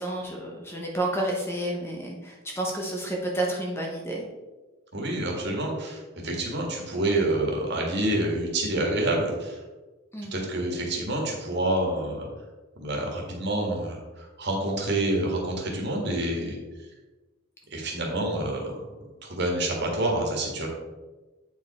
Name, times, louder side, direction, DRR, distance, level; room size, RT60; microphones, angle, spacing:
voice 1, 0.0-4.2 10.1-10.3, right 1 dB, 10° left, -1 dB, 0.9 m, -30 dB
voice 2, 4.9-9.6 10.3-12.3 12.8-16.6 17.7-18.8 19.2-20.7, right 1 dB, 50° right, -1 dB, 1.8 m, -27 dB
8.4 x 4.8 x 4.2 m, 1.2 s
head